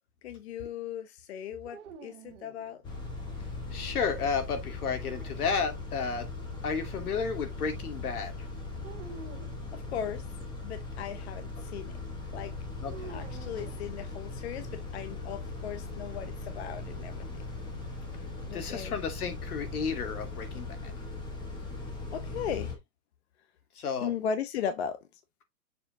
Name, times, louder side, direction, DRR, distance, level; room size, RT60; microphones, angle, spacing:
voice 1, 0.2-2.8 9.7-10.3 10.6-11.9 12.3-12.5 13.1-17.1 18.5-18.9 22.1-22.8 24.0-25.0, left 8 dB, 45° left, 0.8 m, -37 dB
sound 1, 1.6-3.2 4.9-6.0 8.8-9.6 12.9-14.5, right 6 dB, 50° right, 1.6 m, -49 dB
Car / Idling / Accelerating revving vroom, 2.8-22.8, left 3 dB, 10° left, 1.0 m, -39 dB
voice 2, 3.7-6.3 6.6-8.5 12.8-13.1 18.5-20.9 23.8-24.1, left 5 dB, 75° left, 2.4 m, -32 dB
6.9 x 3.8 x 3.7 m
hypercardioid pair, 160°, 45 cm